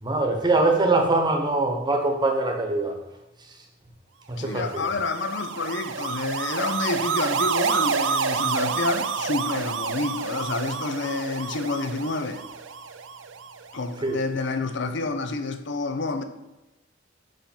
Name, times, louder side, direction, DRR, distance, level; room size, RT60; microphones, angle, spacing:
voice 1, 0.0-3.0 4.3-4.8 14.0-14.2, right 2 dB, 25° right, 1.0 m, -23 dB
voice 2, 4.4-12.4 13.7-16.2, left 3 dB, 65° left, 0.7 m, -29 dB
sound 1, 4.5-13.8, right 6 dB, 70° right, 0.5 m, -29 dB
5.6 x 5.3 x 5.2 m
head